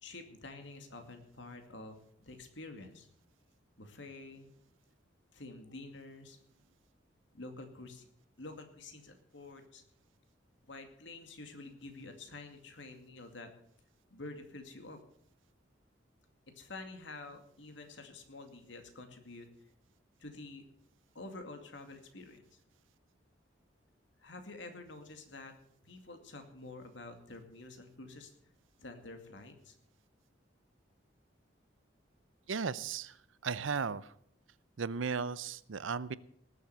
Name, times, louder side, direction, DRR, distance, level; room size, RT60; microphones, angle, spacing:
voice 1, 0.0-3.1 3.8-4.5 5.3-6.4 7.3-8.1 8.4-9.8 10.6-13.5 14.1-15.0 16.6-19.5 20.2-20.6 21.1-22.6 24.2-25.5 25.8-28.3 28.8-29.7, left 2 dB, 70° left, 6 dB, 2.3 m, -48 dB
voice 2, 32.5-33.1 33.4-34.0 34.8-36.2, right 5 dB, 85° right, 18 dB, 0.6 m, -35 dB
19.0 x 7.7 x 6.8 m, 0.67 s
head